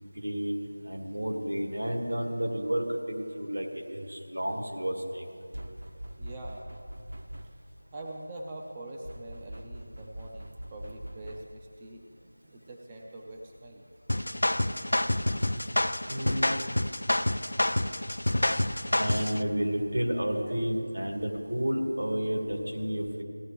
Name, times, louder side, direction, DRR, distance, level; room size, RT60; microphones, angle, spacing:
voice 1, 0.0-5.2 16.1-16.5 19.0-23.2, equal, 80° right, 0 dB, 2.2 m, -31 dB
sound 1, 5.5-7.8 9.0-11.7, right 1 dB, 60° right, 0.9 m, -43 dB
voice 2, 6.2-6.6 7.4-7.6 7.9-13.8 20.5-20.6, right 1 dB, 10° right, 0 dB, 0.4 m, -44 dB
sound 2, 14.1-19.4, left 1 dB, 75° left, 0.5 m, -27 dB
16.0 x 9.8 x 3.4 m, 2.3 s
figure-of-eight pair, 175°, 0 cm